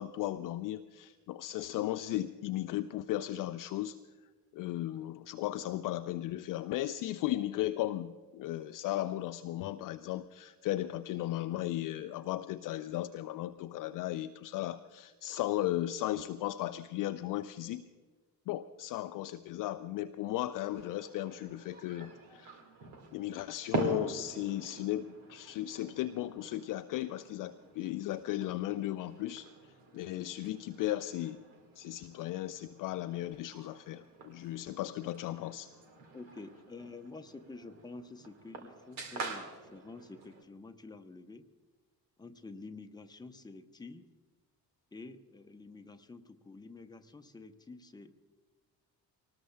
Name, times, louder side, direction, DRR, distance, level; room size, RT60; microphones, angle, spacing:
voice 1, 0.0-4.0 4.5-17.8 18.5-22.6 23.1-29.5 29.9-31.4 31.8-35.7, left 14 dB, 45° left, 11 dB, 0.4 m, -36 dB
sound 1, 20.7-40.4, right 3 dB, 65° right, 2.0 m, -45 dB
voice 2, 36.1-41.5 42.2-44.1 44.9-48.1, left 3 dB, 10° left, 7 dB, 0.8 m, -49 dB
24.0 x 19.0 x 2.3 m, 1.4 s
figure-of-eight pair, 40°, 50 cm